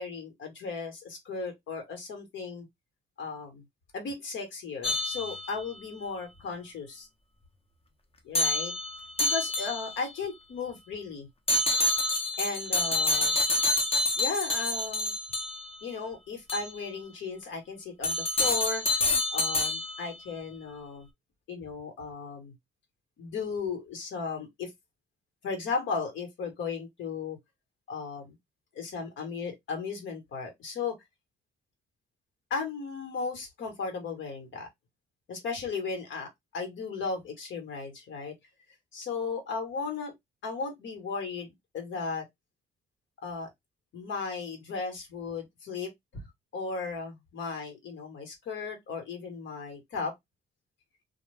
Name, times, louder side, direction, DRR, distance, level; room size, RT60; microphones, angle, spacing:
voice 1, 0.0-2.7 3.2-3.6 3.9-7.1 8.2-8.7 9.2-11.3 12.4-13.4 14.2-15.1 15.8-21.1 21.5-22.5 23.2-24.7 25.4-27.4 27.9-28.3 28.7-31.0 32.5-34.7 35.3-38.3 38.9-40.1 40.4-42.3 43.2-43.5 43.9-46.2 46.5-50.1, left 4 dB, 75° left, 1.3 m, -36 dB
sound 1, 4.8-5.8 8.3-10.1 11.5-15.8 16.5-16.7 18.0-20.2, left 2 dB, 30° left, 0.7 m, -28 dB
2.3 x 2.2 x 3.3 m
cardioid pair, 90°, 20 cm